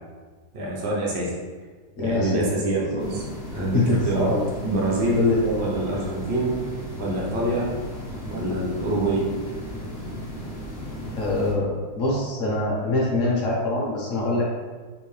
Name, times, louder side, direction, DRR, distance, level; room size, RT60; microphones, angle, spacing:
voice 1, 0.5-1.3 2.0-3.2 3.5-4.3 4.6-5.2 5.6-6.5 7.0-7.7 8.3-9.3, right 2 dB, 85° right, -4 dB, 0.5 m, -26 dB
voice 2, 2.0-2.7 3.5-4.5 5.1-5.6 11.2-14.5, left 2 dB, 60° left, -4 dB, 0.9 m, -24 dB
sound 1, 3.0-11.5, equal, 75° left, 0.4 m, -35 dB
3.5 x 2.7 x 3.1 m, 1.4 s
omnidirectional pair, 2.1 m